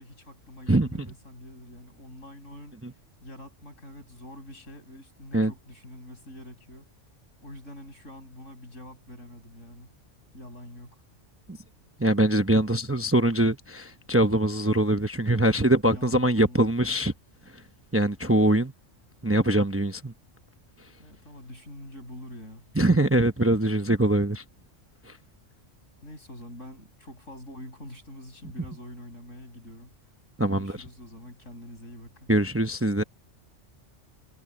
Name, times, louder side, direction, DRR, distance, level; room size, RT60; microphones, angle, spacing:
voice 1, 0.0-2.9 3.2-6.9 7.4-9.9 10.3-11.0 15.4-16.6 21.0-22.7 26.0-29.9 30.5-32.3, left 1 dB, 80° left, 8.2 m, -45 dB
voice 2, 12.0-17.1 17.9-18.7 19.2-20.1 22.7-24.4 25.1-25.2 30.4-30.7 32.3-33.0, right 1 dB, 15° right, 0.7 m, -23 dB
omnidirectional pair, 1.3 m